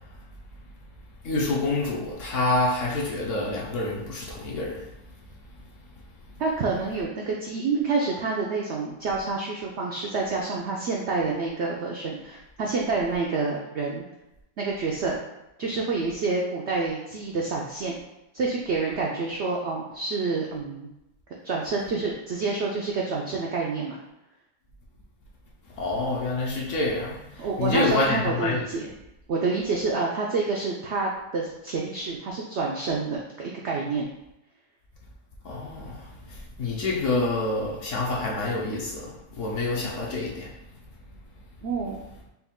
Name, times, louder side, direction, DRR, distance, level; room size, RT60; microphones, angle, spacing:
voice 1, 1.2-4.9 25.8-28.6 35.4-40.5, left 2 dB, 60° left, -3 dB, 0.9 m, -27 dB
voice 2, 6.4-14.0 14.6-15.2 15.6-18.0 18.3-20.9 21.4-24.0 27.4-28.9 29.3-34.1 41.6-42.0, right 4 dB, 75° right, -2 dB, 0.6 m, -28 dB
4.4 x 2.3 x 3.5 m, 0.90 s
omnidirectional pair, 1.7 m